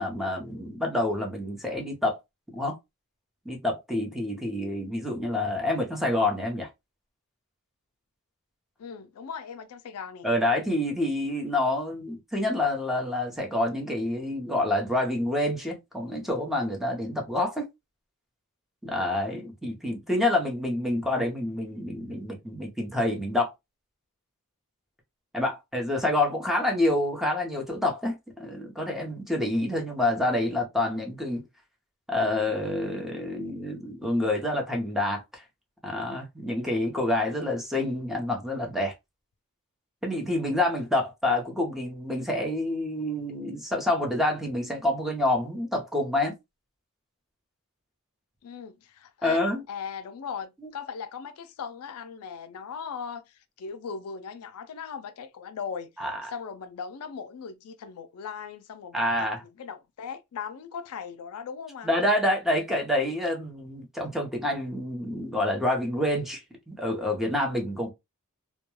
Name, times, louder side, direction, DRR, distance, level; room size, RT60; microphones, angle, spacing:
voice 1, 0.0-2.2 2.5-2.8 3.5-6.7 10.2-17.7 18.8-23.5 25.3-31.4 32.1-35.4 35.8-38.9 40.0-46.3 49.2-49.6 56.0-56.2 58.9-59.4 61.8-67.9, left 1 dB, ahead, 0.6 m, -27 dB
voice 2, 8.8-10.3 48.4-49.4 49.7-55.9 56.3-61.9, left 6 dB, 75° left, 0.4 m, -38 dB
2.2 x 2.1 x 3.0 m
head